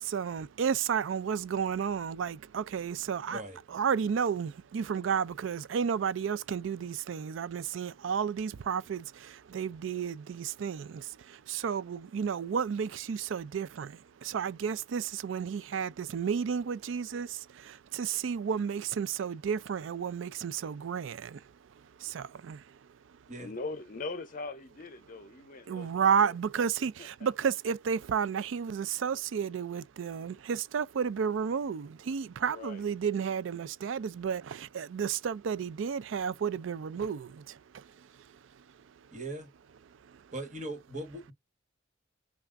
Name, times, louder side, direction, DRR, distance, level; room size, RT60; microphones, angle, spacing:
voice 1, 0.0-3.4 3.7-21.4 22.0-22.8 25.7-38.1 40.1-40.2, right 7 dB, 85° right, 0.4 m, -32 dB
voice 2, 3.3-3.6 23.3-23.5 39.1-39.5 40.3-41.3, right 1 dB, 40° right, 1.4 m, -39 dB
voice 3, 23.4-26.4 26.8-27.3 32.1-32.9, left 3 dB, 45° left, 0.7 m, -42 dB
5.7 x 2.4 x 2.4 m
head